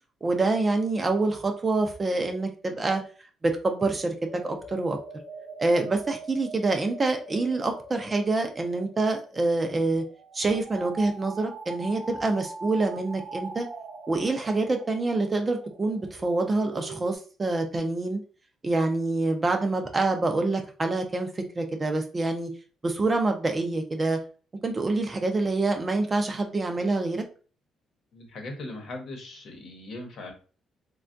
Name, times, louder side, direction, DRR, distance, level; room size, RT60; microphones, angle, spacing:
voice 1, 0.2-3.0 3.4-4.1 4.4-5.0 5.6-10.0 10.3-13.7 14.1-18.2 18.6-22.5 22.8-24.2 24.6-27.2, right 2 dB, 25° right, 4 dB, 0.4 m, -26 dB
sound 1, 3.9-17.2, right 3 dB, 60° right, 0.8 m, -43 dB
voice 2, 28.1-30.3, left 2 dB, 60° left, 3 dB, 0.9 m, -39 dB
3.4 x 2.2 x 2.5 m, 0.37 s
cardioid pair, 125°, 0 cm